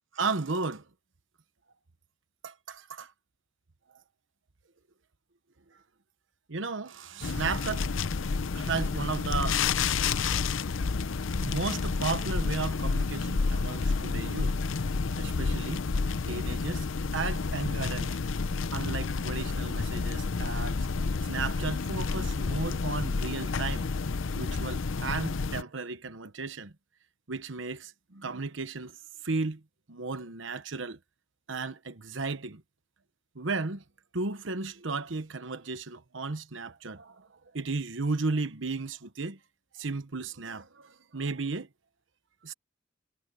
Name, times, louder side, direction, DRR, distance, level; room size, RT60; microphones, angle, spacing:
voice 1, 0.1-0.8 2.4-3.1 6.5-8.0 8.5-9.7 10.0-10.1 11.4-14.6 15.2-15.8 16.3-16.9 17.1-18.2 18.7-20.9 21.2-23.9 24.4-26.7 27.3-29.0 29.2-29.6 29.9-31.0 31.5-32.6 33.3-33.8 34.1-37.3 37.5-39.4 39.7-41.7 42.4-42.5, right 4 dB, 75° right, 1.1 m, -34 dB
sound 1, 7.2-25.6, left 4 dB, 90° left, 0.6 m, -30 dB
head